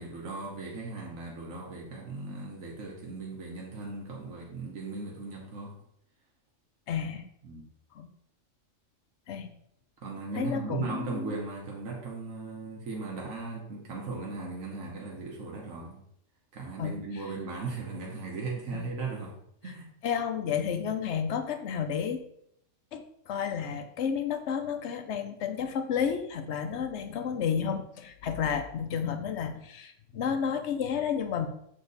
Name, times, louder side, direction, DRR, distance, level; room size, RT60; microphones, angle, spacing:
voice 1, 0.0-5.8 7.4-7.7 10.0-16.0 16.5-19.3 19.6-19.9, right 3 dB, 90° right, -2 dB, 1.5 m, -37 dB
voice 2, 6.9-7.2 7.9-8.1 9.3-9.5 10.3-11.3 16.8-17.0 18.7-18.8 19.6-19.7 20.0-22.2 22.9-31.5, left 7 dB, 65° left, 7 dB, 0.9 m, -31 dB
6.9 x 3.6 x 3.9 m, 0.73 s
omnidirectional pair, 1.3 m